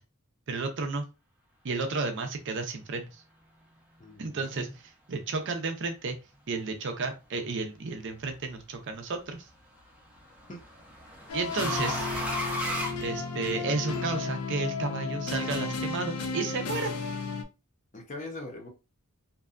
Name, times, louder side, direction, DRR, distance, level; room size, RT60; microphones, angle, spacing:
voice 1, 0.5-1.1 1.6-3.2 4.2-6.2 6.5-9.5 11.3-12.1 13.0-16.9, right 3 dB, 55° right, 5 dB, 0.5 m, -32 dB
voice 2, 4.0-4.7 10.5-10.6 17.9-18.7, left 2 dB, 35° left, 1 dB, 0.7 m, -41 dB
sound 1, 7.9-8.3 9.8-13.8, left 1 dB, 5° right, 0.6 m, -35 dB
sound 2, 11.3-17.4, left 4 dB, 70° left, 0.4 m, -34 dB
2.6 x 2.2 x 2.4 m, 0.29 s
head